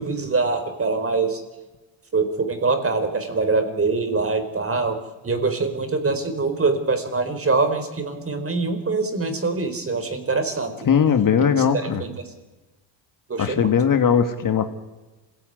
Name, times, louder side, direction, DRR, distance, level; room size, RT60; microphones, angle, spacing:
voice 1, 0.0-1.4 2.1-5.0 5.2-10.9 11.4-12.3 13.3-13.7, right 3 dB, 25° right, 9 dB, 4.3 m, -24 dB
voice 2, 10.9-12.0 13.4-14.7, left 7 dB, 40° left, 8 dB, 2.0 m, -19 dB
25.5 x 17.0 x 9.4 m, 1.2 s
supercardioid pair, 90°, 48 cm